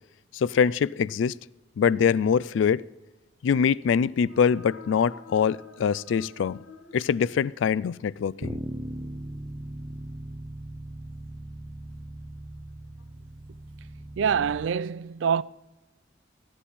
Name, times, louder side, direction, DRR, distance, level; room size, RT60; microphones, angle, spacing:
voice 1, 0.3-1.3 1.8-2.8 3.4-6.6 6.9-8.6, left 7 dB, 75° left, 0.3 m, -24 dB
sound 1, 4.0-7.8, left 3 dB, 55° left, 1.1 m, -49 dB
Bass guitar, 8.4-14.7, right 1 dB, 20° right, 0.5 m, -39 dB
voice 2, 14.2-15.4, right 7 dB, 75° right, 0.4 m, -25 dB
15.0 x 10.0 x 4.2 m
head